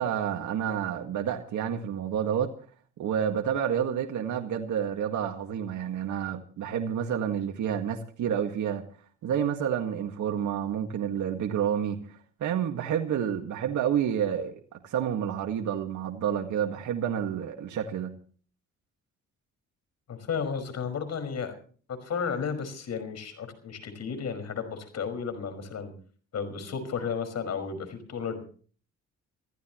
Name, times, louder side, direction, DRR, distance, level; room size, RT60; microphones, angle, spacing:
voice 1, 0.0-2.5 3.0-8.8 9.2-18.1, right 9 dB, 75° right, 3 dB, 1.9 m, -29 dB
voice 2, 20.1-21.6 21.9-25.9 26.3-28.4, left 6 dB, 60° left, 10 dB, 5.5 m, -33 dB
26.5 x 15.5 x 3.1 m, 0.43 s
cardioid pair, 90°, 30 cm